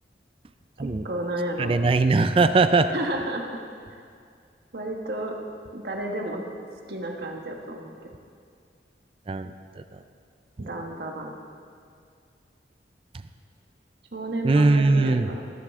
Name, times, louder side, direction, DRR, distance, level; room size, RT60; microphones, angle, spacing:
voice 1, 0.8-1.7 2.9-3.6 4.7-5.3 5.7-6.4 6.9-7.9 10.6-11.4 14.1-15.4, right 1 dB, 65° right, 1 dB, 1.4 m, -32 dB
voice 2, 1.6-2.9 9.3-10.0 10.6-10.7 14.4-15.3, right 3 dB, 30° right, 10 dB, 0.4 m, -21 dB
21.5 x 7.6 x 3.7 m, 2.3 s
head